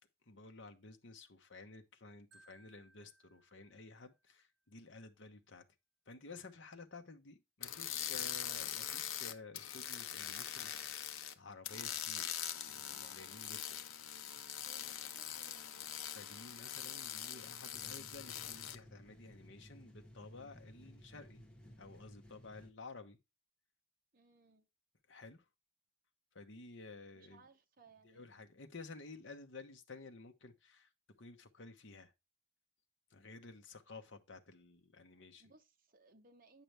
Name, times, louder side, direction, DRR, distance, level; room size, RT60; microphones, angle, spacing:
voice 1, 0.3-5.6 6.1-11.1 11.3-12.4 12.7-13.8 16.1-21.4 21.8-23.2 25.1-25.4 26.3-27.4 28.0-30.9 31.2-32.1 33.1-35.4, left 3 dB, 55° left, 1.0 m, -53 dB
Marimba xylophone, 2.3-4.4, right 2 dB, 65° right, 1.4 m, -67 dB
sound 1, 7.6-11.3 11.6-18.8, left 10 dB, 80° left, 0.7 m, -43 dB
voice 2, 7.9-8.2 14.6-16.0 24.1-24.7 27.2-28.4 35.4-36.6, right 3 dB, 40° right, 1.0 m, -65 dB
sound 2, 17.7-22.7, equal, 5° left, 1.1 m, -57 dB
9.1 x 5.9 x 3.4 m
head